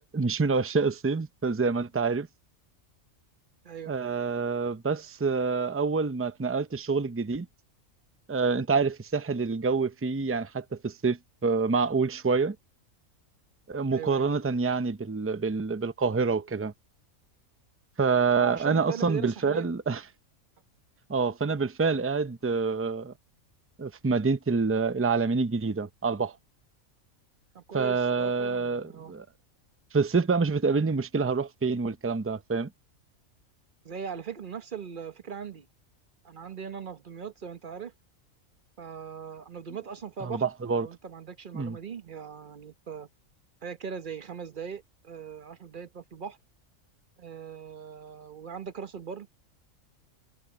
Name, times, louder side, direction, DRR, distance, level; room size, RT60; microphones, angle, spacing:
voice 1, 0.0-2.3 3.9-7.5 8.3-12.6 13.7-16.7 18.0-20.0 21.1-23.1 23.8-26.3 27.7-29.3 29.9-32.7 40.2-40.9 41.5-41.8, right 4 dB, 20° right, 0.3 m, -27 dB
voice 2, 13.9-14.3 18.4-19.7 27.5-29.1 33.8-35.7 36.2-37.9 38.8-40.5 40.7-43.1 43.6-46.4 47.2-49.3, right 7 dB, 40° right, 1.0 m, -39 dB
omnidirectional pair, 1.4 m